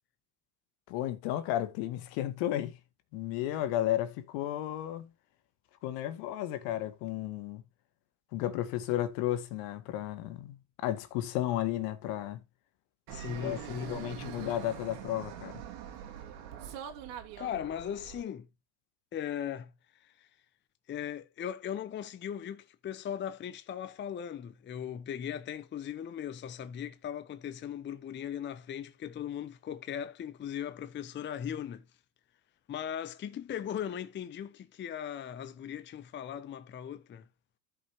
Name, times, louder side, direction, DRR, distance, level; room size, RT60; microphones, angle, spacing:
voice 1, 0.9-2.8 3.1-5.1 5.8-7.6 8.3-12.4 13.4-13.6 13.9-15.6, left 13 dB, 70° left, 1.7 m, -33 dB
voice 2, 13.1-14.0 17.4-18.5 19.1-20.3 20.9-31.9 32.7-37.3, left 9 dB, 25° left, 0.7 m, -38 dB
Fixed-wing aircraft airplane, 13.1-18.2, right 9 dB, 75° right, 2.6 m, -43 dB
14.5 x 5.3 x 2.7 m
supercardioid pair, 120°, 47 cm